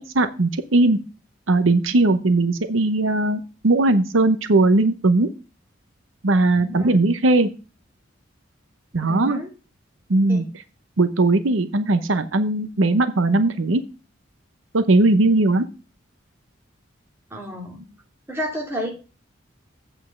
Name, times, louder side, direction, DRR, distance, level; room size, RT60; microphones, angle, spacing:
voice 1, 0.1-1.0 1.5-5.3 6.2-7.5 8.9-9.4 10.1-10.4 11.0-13.8 14.7-15.7, right 2 dB, 85° right, 10 dB, 0.8 m, -19 dB
voice 2, 6.5-7.0 9.0-9.5 10.3-10.5 17.3-17.9 18.3-18.9, equal, 10° right, -1 dB, 2.7 m, -31 dB
8.5 x 5.4 x 6.9 m, 0.33 s
head